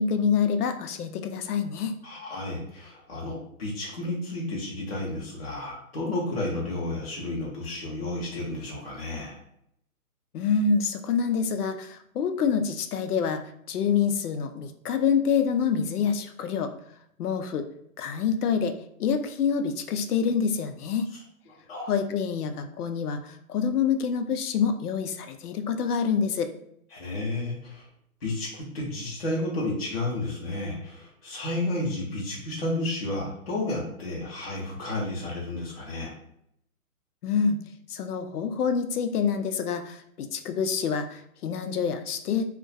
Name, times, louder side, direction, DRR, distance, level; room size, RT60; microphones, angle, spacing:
voice 1, 0.0-1.9 10.3-13.4 13.7-16.7 17.2-17.7 18.0-21.1 21.9-26.5 37.2-37.6 37.9-42.4, left 6 dB, 90° left, 8 dB, 0.5 m, -26 dB
voice 2, 2.0-9.4 21.7-21.9 26.9-27.9 28.2-36.1, left 2 dB, 45° left, -4 dB, 0.5 m, -32 dB
2.3 x 2.1 x 2.6 m, 0.73 s
hypercardioid pair, 180°, 44 cm